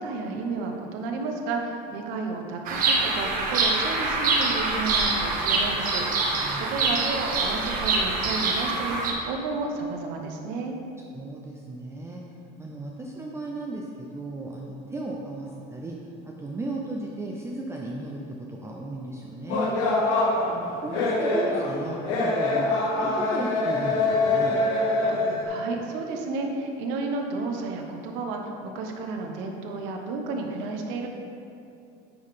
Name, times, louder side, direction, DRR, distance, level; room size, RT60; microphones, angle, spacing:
voice 1, 0.0-6.0 6.3-10.8 25.2-31.1, right 3 dB, 70° right, 2 dB, 1.1 m, -32 dB
Bird vocalization bird call bird song, 2.7-9.1, right 3 dB, 45° right, 1.2 m, -25 dB
voice 2, 6.3-6.7 11.1-12.2 12.6-16.0 16.2-19.8 20.5-24.6, right 2 dB, 15° right, -1 dB, 0.5 m, -35 dB
sound 1, 19.5-25.4, left 2 dB, 70° left, 1.3 m, -24 dB
9.5 x 3.8 x 4.9 m, 2.7 s
cardioid pair, 140°, 20 cm